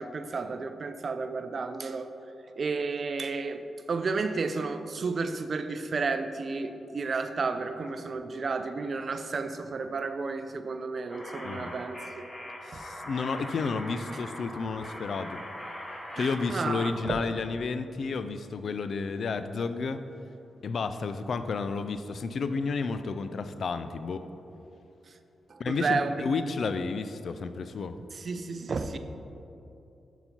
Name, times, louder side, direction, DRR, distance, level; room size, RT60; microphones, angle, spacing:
voice 1, 0.0-2.2 2.6-12.3 16.2-17.2 25.1-25.2 25.5-26.2 28.1-29.0, right 4 dB, 55° right, 10 dB, 0.4 m, -32 dB
sound 1, 11.1-17.0, equal, 30° left, 1.6 m, -41 dB
voice 2, 12.6-15.4 16.2-20.1 20.6-24.3 25.6-28.0, left 4 dB, 65° left, 11 dB, 0.3 m, -31 dB
6.8 x 4.0 x 5.8 m, 2.8 s
supercardioid pair, 40°, 0 cm